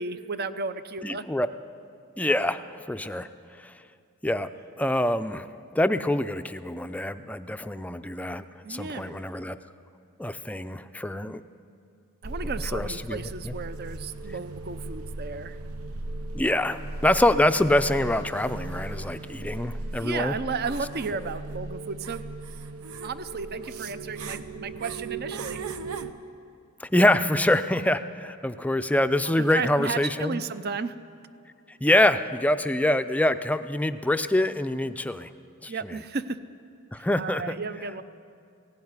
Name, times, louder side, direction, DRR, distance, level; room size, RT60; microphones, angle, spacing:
voice 1, 0.0-1.2 8.6-9.2 12.2-15.6 20.0-22.2 23.0-25.7 29.2-31.0 35.7-36.4 37.0-38.0, right 4 dB, 45° right, 12 dB, 0.7 m, -34 dB
voice 2, 1.0-1.5 2.2-3.3 3.6-3.7 4.2-4.5 4.8-5.5 5.7-8.4 8.7-9.6 10.2-11.4 12.7-13.5 16.3-20.4 26.8-30.4 31.8-35.3 35.6-36.0 36.9-37.6, left 1 dB, 5° left, 10 dB, 0.5 m, -25 dB
sound 1, 12.2-26.1, right 2 dB, 85° right, 0.8 m, -37 dB
16.5 x 16.5 x 9.7 m, 2.4 s
head